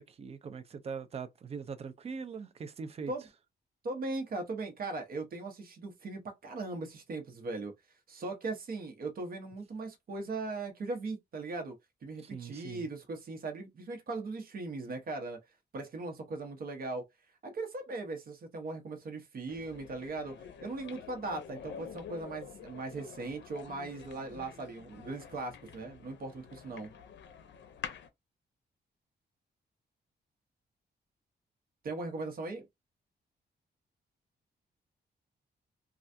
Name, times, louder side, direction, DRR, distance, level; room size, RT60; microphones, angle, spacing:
voice 1, 0.0-3.1 12.2-12.9, right 5 dB, 35° right, 0.4 m, -42 dB
voice 2, 3.8-7.7 8.1-11.8 12.0-15.4 15.7-17.0 17.4-26.9 31.8-32.7, right 3 dB, 55° right, 0.9 m, -39 dB
sound 1, 19.5-28.1, left 8 dB, 85° left, 0.5 m, -48 dB
3.3 x 2.4 x 2.6 m
wide cardioid pair, 165°, 18 cm